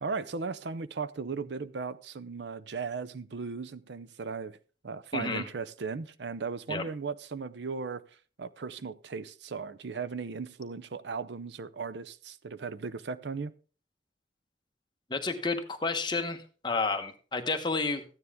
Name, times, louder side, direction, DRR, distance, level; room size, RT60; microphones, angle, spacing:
voice 1, 0.0-4.6 4.8-8.0 8.4-13.5, right 5 dB, 75° right, 0.6 m, -37 dB
voice 2, 5.1-5.4 6.7-6.8 15.1-18.0, left 3 dB, 25° left, 1.1 m, -31 dB
14.0 x 9.6 x 3.6 m
head